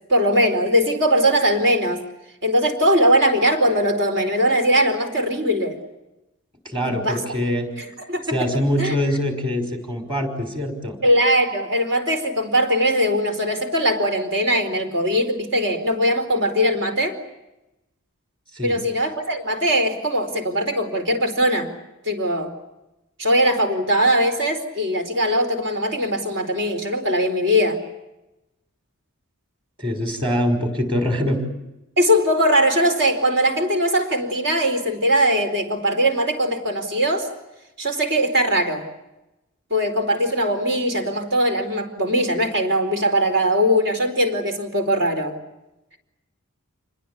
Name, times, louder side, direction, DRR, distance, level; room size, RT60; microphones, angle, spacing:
voice 1, 0.1-2.0 2.4-5.8 6.8-7.2 7.8-8.4 8.8-8.9 11.0-17.2 18.6-21.7 22.0-22.5 23.2-27.8 32.0-37.3 37.8-38.8 39.7-45.3, equal, 55° right, 6 dB, 4.3 m, -20 dB
voice 2, 6.7-7.7 8.3-11.0 18.5-18.8 29.8-31.4, equal, 25° right, 6 dB, 5.5 m, -23 dB
28.5 x 21.0 x 8.6 m, 0.96 s
head